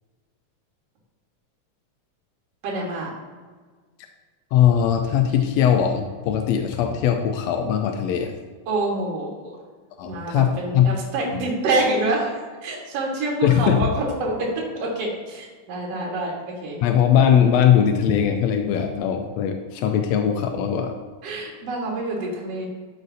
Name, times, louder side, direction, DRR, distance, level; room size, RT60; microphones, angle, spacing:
voice 1, 2.6-3.1 8.7-9.6 10.0-16.8 21.2-22.7, right 2 dB, 55° right, -3 dB, 2.4 m, -26 dB
voice 2, 4.5-8.3 10.0-10.9 13.4-13.8 16.8-21.0, left 9 dB, 80° left, 5 dB, 1.5 m, -20 dB
12.5 x 5.1 x 2.7 m, 1.5 s
omnidirectional pair, 3.6 m